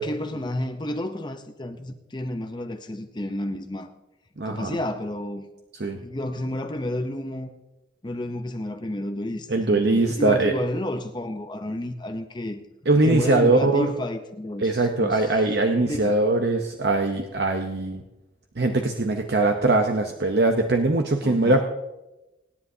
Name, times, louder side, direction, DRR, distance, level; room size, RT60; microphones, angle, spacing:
voice 1, 0.0-3.9 4.4-5.5 6.0-7.5 8.0-12.6 13.0-15.5 15.9-16.2 21.2-21.6, left 1 dB, 25° left, 7 dB, 0.7 m, -31 dB
voice 2, 4.4-4.8 5.8-6.0 9.5-10.5 12.9-13.9 14.6-18.0 18.6-21.6, right 2 dB, 60° right, 4 dB, 0.8 m, -21 dB
25.5 x 10.0 x 2.8 m, 1.0 s
head